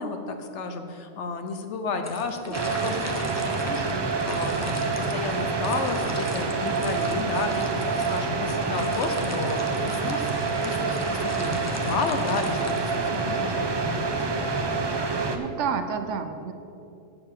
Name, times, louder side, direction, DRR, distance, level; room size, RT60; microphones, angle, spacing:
voice 1, 0.0-14.1, left 4 dB, 65° left, 6 dB, 1.0 m, -32 dB
sound 1, 2.0-13.4, left 2 dB, 20° left, 0.5 m, -42 dB
sound 2, 2.5-15.4, right 4 dB, 35° right, 0.4 m, -27 dB
voice 2, 15.3-16.5, right 6 dB, 70° right, 8 dB, 1.0 m, -29 dB
6.8 x 6.6 x 7.3 m, 2.6 s
omnidirectional pair, 1.3 m